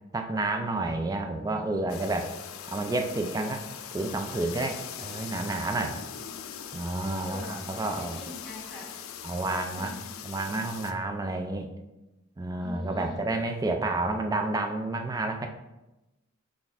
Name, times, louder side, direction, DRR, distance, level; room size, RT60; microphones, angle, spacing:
voice 1, 0.1-2.3 2.7-3.6 3.9-6.0 6.7-8.2 9.2-9.9 10.2-11.7 12.4-15.5, right 2 dB, 20° right, 5 dB, 0.3 m, -30 dB
sound 1, 1.9-10.9, left 8 dB, 90° left, 0.4 m, -41 dB
voice 2, 5.7-6.5 7.0-7.5 7.7-8.9 9.7-10.1 12.6-13.2, left 1 dB, ahead, -5 dB, 1.3 m, -45 dB
5.9 x 2.4 x 3.5 m, 1.0 s
head